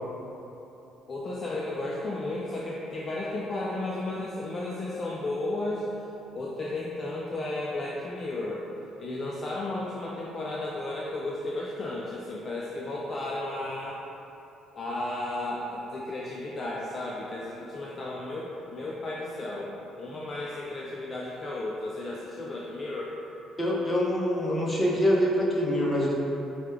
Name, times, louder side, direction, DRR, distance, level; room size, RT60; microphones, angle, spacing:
voice 1, 1.1-5.9 6.3-8.7 9.0-14.0 14.8-23.1, left 2 dB, 40° left, -4 dB, 0.4 m, -34 dB
voice 2, 23.6-26.2, equal, 20° left, -4 dB, 0.9 m, -25 dB
4.8 x 2.2 x 3.3 m, 3.0 s
supercardioid pair, 75°, 0 cm